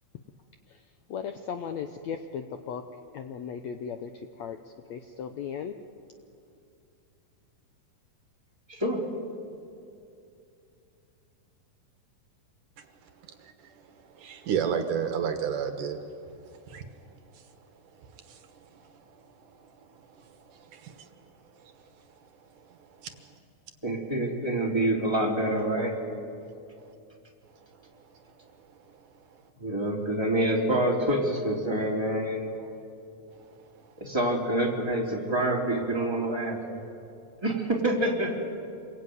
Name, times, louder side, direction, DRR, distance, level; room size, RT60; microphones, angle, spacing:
voice 1, 1.1-2.9 3.1-4.6 4.9-5.8, left 7 dB, 75° left, 7 dB, 1.7 m, -36 dB
voice 2, 8.7-9.0 23.8-25.9 29.6-32.5 34.0-36.8 37.4-38.4, right 1 dB, 5° right, -2 dB, 3.4 m, -27 dB
voice 3, 14.2-16.0 16.7-16.8 18.3-18.4 20.7-20.9, right 7 dB, 70° right, 7 dB, 2.7 m, -29 dB
27.5 x 22.0 x 9.6 m, 2.6 s
omnidirectional pair, 4.1 m